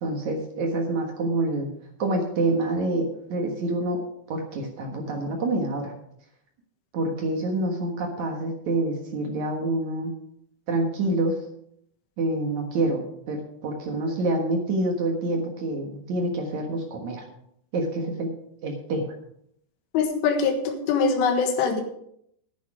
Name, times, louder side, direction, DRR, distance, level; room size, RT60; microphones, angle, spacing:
voice 1, 0.0-1.7 2.0-4.0 4.3-5.9 6.9-10.1 10.7-11.4 12.2-17.2 17.7-18.3 18.6-19.1, right 2 dB, 65° right, 2 dB, 1.8 m, -27 dB
voice 2, 19.9-21.8, left 5 dB, 85° left, 4 dB, 4.0 m, -23 dB
11.0 x 10.5 x 4.9 m, 0.72 s
omnidirectional pair, 5.5 m